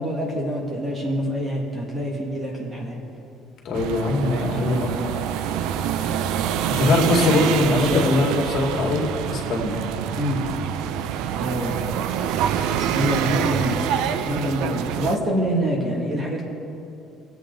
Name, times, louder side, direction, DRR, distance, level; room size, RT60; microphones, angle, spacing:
voice 1, 0.0-3.0 4.5-5.1 7.6-8.1 10.1-10.4 11.3-11.8 12.8-13.8 14.1-16.4, equal, 25° right, -2 dB, 2.4 m, -26 dB
voice 2, 3.6-4.9 6.8-9.8, left 3 dB, 50° left, 0 dB, 2.4 m, -22 dB
sound 1, 3.7-15.2, right 9 dB, 85° right, 0.5 m, -26 dB
22.0 x 8.2 x 4.0 m, 2.7 s
cardioid pair, 145°, 0 cm